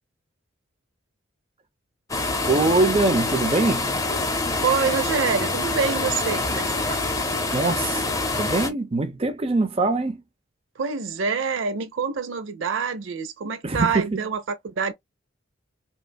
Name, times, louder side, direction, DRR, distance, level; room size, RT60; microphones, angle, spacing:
sound 1, 2.1-8.7, left 2 dB, 15° left, 0.6 m, -26 dB
voice 1, 2.5-3.9 7.5-8.0 8.4-10.2 13.6-14.2, right 2 dB, 30° right, 0.7 m, -23 dB
voice 2, 4.6-7.0 10.8-14.9, right 5 dB, 80° right, 0.6 m, -26 dB
5.3 x 2.2 x 2.3 m
head